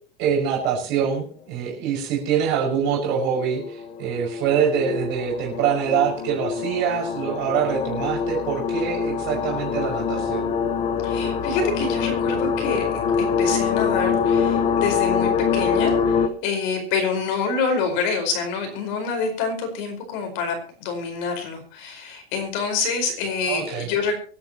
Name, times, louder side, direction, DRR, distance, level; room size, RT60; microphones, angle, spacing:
voice 1, 0.2-10.5 23.5-23.9, right 7 dB, 35° right, -1 dB, 5.8 m, -24 dB
sound 1, 0.9-1.0 2.5-16.3, left 6 dB, 20° left, 0.9 m, -24 dB
voice 2, 11.0-24.2, left 4 dB, 50° left, 4 dB, 5.0 m, -27 dB
25.0 x 10.5 x 3.0 m, 0.41 s
supercardioid pair, 165°, 30 cm